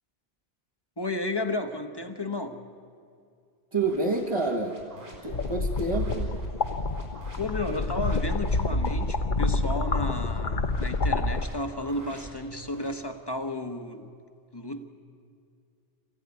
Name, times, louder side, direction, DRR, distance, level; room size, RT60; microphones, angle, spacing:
voice 1, 1.0-2.6 7.4-14.1 14.5-14.9, left 1 dB, 25° left, 7 dB, 1.3 m, -33 dB
voice 2, 3.7-4.8 5.2-6.3, right 3 dB, 30° right, 0 dB, 1.5 m, -28 dB
sound 1, 3.8-9.1 10.4-12.9, equal, 70° right, 5.8 m, -48 dB
sound 2, 5.3-11.4, left 3 dB, 50° left, 1.1 m, -28 dB
27.0 x 15.5 x 9.7 m, 2.4 s
omnidirectional pair, 1.1 m